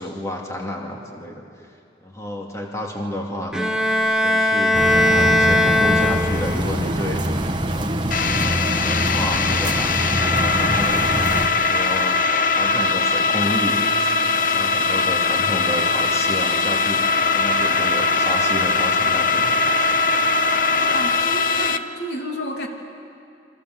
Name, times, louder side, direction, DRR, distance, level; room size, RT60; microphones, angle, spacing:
voice 1, 0.0-1.4 2.0-3.6 4.1-7.2 7.6-7.9 8.4-11.3 11.5-12.2 12.5-13.8 14.5-17.0 17.3-19.5, left 1 dB, 15° left, 0 dB, 2.7 m, -30 dB
Bowed string instrument, 3.5-6.7, left 1 dB, 5° right, 1.1 m, -19 dB
sound 1, 4.7-11.5, right 1 dB, 25° right, 1.3 m, -24 dB
sound 2, 8.1-21.8, left 4 dB, 50° left, 0.9 m, -20 dB
voice 2, 20.9-22.7, equal, 75° left, 2 dB, 3.0 m, -31 dB
29.0 x 25.5 x 8.0 m, 2.4 s
head